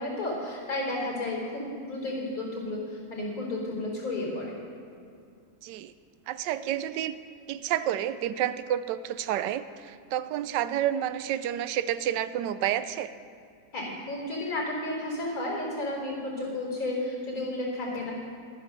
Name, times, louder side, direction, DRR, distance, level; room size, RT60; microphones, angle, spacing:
voice 1, 0.0-4.6 13.7-18.1, left 2 dB, 55° left, -2 dB, 4.3 m, -32 dB
voice 2, 5.6-5.9 6.3-7.1 7.5-13.1, right 11 dB, 80° right, 13 dB, 1.2 m, -30 dB
11.5 x 9.8 x 6.6 m, 2.3 s
omnidirectional pair, 1.9 m